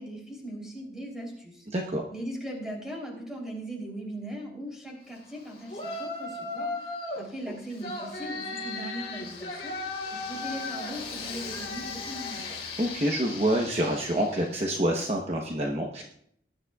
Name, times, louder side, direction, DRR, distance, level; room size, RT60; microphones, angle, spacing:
voice 1, 0.0-1.7 2.1-9.7 10.1-12.4, right 1 dB, 5° right, -1 dB, 3.2 m, -39 dB
voice 2, 1.7-2.0 12.8-16.0, right 1 dB, 35° right, 0 dB, 0.9 m, -27 dB
Yell, 5.7-7.3 7.8-14.5, left 3 dB, 35° left, 3.3 m, -36 dB
19.5 x 10.5 x 2.4 m, 0.67 s
head